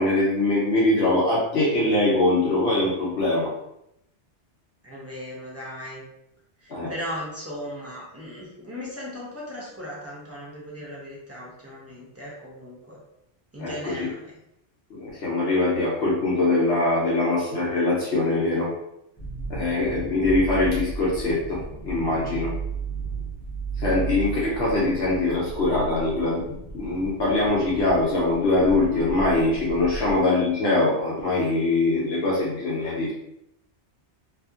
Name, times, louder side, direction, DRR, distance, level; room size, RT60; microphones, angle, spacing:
voice 1, 0.0-3.5 6.7-6.9 13.6-14.1 15.0-18.7 19.5-22.5 23.8-26.4 26.7-33.1, left 2 dB, 65° left, -6 dB, 0.9 m, -23 dB
voice 2, 4.8-6.0 6.6-13.0 13.5-14.4 29.9-30.0, equal, 15° right, -6 dB, 0.6 m, -37 dB
sound 1, 19.2-30.2, right 4 dB, 20° left, 0.9 m, -34 dB
2.8 x 2.4 x 2.4 m, 0.81 s
omnidirectional pair, 1.2 m